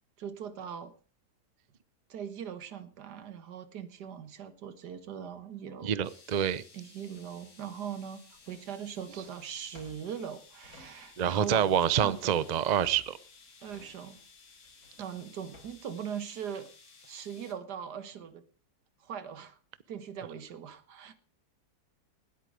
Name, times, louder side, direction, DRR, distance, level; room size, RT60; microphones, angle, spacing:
voice 1, 0.2-0.9 2.1-5.9 6.7-12.4 13.6-14.2 15.0-16.7 17.0-18.4 19.0-19.6 19.9-21.1, right 8 dB, 85° right, 13 dB, 1.8 m, -40 dB
voice 2, 5.8-6.6 11.2-13.2, right 9 dB, 55° right, 18 dB, 0.4 m, -27 dB
sound 1, 6.0-17.5, left 4 dB, 85° left, 3.0 m, -57 dB
Drawer open or close, 8.3-11.5 11.7-16.0, left 1 dB, 60° left, 3.5 m, -57 dB
19.0 x 8.7 x 5.1 m, 0.39 s
omnidirectional pair, 1.7 m